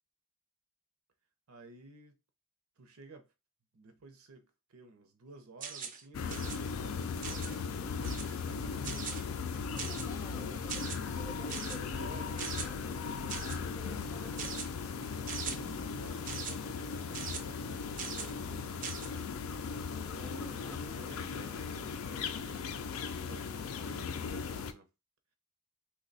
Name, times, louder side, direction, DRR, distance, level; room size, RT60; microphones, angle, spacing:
voice 1, 1.5-2.2 2.8-3.3 3.7-9.4 10.5-10.9 11.9-12.7 13.8-14.4 15.0-18.8 20.1-24.9, right 3 dB, 75° right, 0.7 m, -54 dB
sound 1, 5.6-6.0 6.3-6.6 7.2-7.6 8.0-8.3 8.8-9.2 9.8-10.1 10.7-11.0 11.5-11.8 12.4-12.7 13.3-13.6 14.4-14.7 15.3-15.6 16.3-16.5 17.1-17.4 18.0-18.3 18.8-19.1, right 6 dB, 35° right, 0.4 m, -40 dB
sound 2, 6.1-24.7, left 5 dB, 70° left, 0.4 m, -38 dB
voice 2, 9.7-13.1 13.6-14.7 19.9-21.9, left 1 dB, 15° left, 0.5 m, -51 dB
2.8 x 2.2 x 3.9 m
head